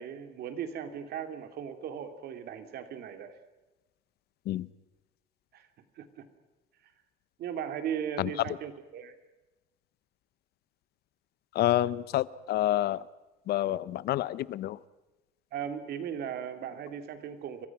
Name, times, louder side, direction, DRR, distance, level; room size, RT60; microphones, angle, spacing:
voice 1, 0.0-3.4 5.5-5.7 6.0-6.2 7.4-9.1 15.5-17.7, right 8 dB, 70° right, 8 dB, 2.6 m, -37 dB
voice 2, 11.5-13.0 13.5-14.8, left 14 dB, 70° left, 19 dB, 0.8 m, -28 dB
29.0 x 24.0 x 6.0 m, 1.1 s
cardioid pair, 110°, 17 cm